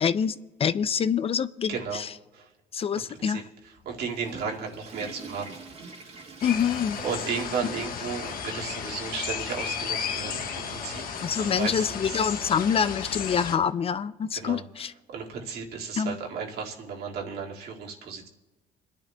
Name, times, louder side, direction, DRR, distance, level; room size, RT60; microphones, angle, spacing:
voice 1, 0.0-2.1 2.7-3.4 6.4-7.0 11.2-14.9 16.0-16.2, left 7 dB, 35° left, 15 dB, 0.4 m, -26 dB
voice 2, 1.7-2.0 2.3-2.5 2.9-3.4 3.9-5.6 7.0-11.0 11.4-12.3 14.3-14.6 15.1-18.3, right 5 dB, 70° right, -1 dB, 2.0 m, -34 dB
Water / Toilet flush, 3.8-8.8 9.2-9.3 10.0-10.1 11.4-11.5, right 4 dB, 40° right, 1.8 m, -46 dB
sound 1, 6.4-13.6, left 7 dB, 60° left, 1.2 m, -34 dB
28.0 x 10.5 x 2.2 m, 1.2 s
cardioid pair, 110°, 17 cm